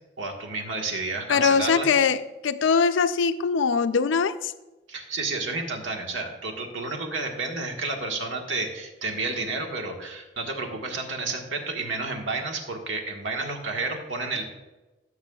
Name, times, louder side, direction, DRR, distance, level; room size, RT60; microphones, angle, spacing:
voice 1, 0.2-1.9 4.9-14.5, right 3 dB, 90° right, 2 dB, 1.5 m, -31 dB
voice 2, 1.3-4.5, left 5 dB, 85° left, 10 dB, 0.5 m, -22 dB
16.0 x 8.1 x 2.3 m, 1.1 s
head